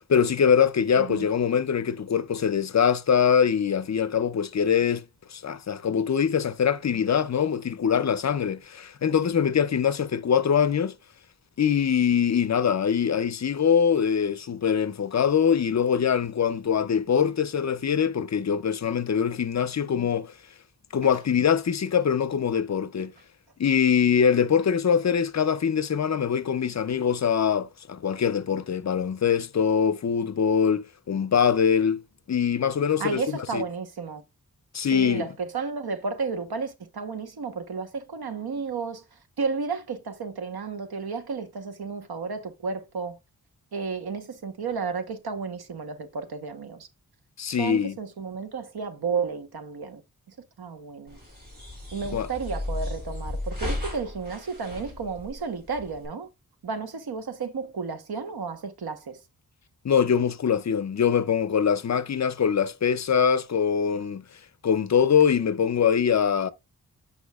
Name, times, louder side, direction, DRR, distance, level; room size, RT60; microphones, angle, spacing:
voice 1, 0.1-5.0 5.3-10.9 11.6-20.3 20.9-23.1 23.6-32.0 32.3-33.2 33.5-33.6 34.7-35.3 47.4-48.0 52.1-52.3 59.8-64.2 64.6-66.5, left 7 dB, 50° left, 0.5 m, -23 dB
voice 2, 1.0-1.3 21.0-21.1 33.0-34.2 34.9-43.2 43.7-46.9 47.5-50.0 50.3-51.2 51.9-56.3 56.6-59.2, right 5 dB, 80° right, 1.0 m, -32 dB
sound 1, 51.1-56.1, left 1 dB, 25° right, 3.6 m, -34 dB
8.2 x 5.5 x 2.3 m
wide cardioid pair, 125°, 37 cm